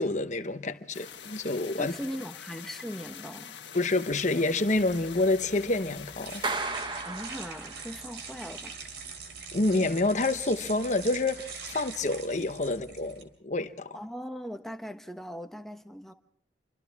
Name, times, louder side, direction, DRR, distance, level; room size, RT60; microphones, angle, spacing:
voice 1, 0.0-1.9 3.7-6.4 9.5-14.0, left 2 dB, 40° left, 1.0 m, -28 dB
sound 1, 0.9-6.5, left 8 dB, 90° left, 1.5 m, -45 dB
voice 2, 1.8-3.6 7.0-8.8 12.7-12.8 13.9-16.1, equal, ahead, 1.2 m, -39 dB
sound 2, 4.6-13.2, right 5 dB, 70° right, 3.7 m, -44 dB
Clapping, 6.4-8.1, right 3 dB, 25° right, 1.4 m, -34 dB
29.5 x 24.5 x 3.6 m
head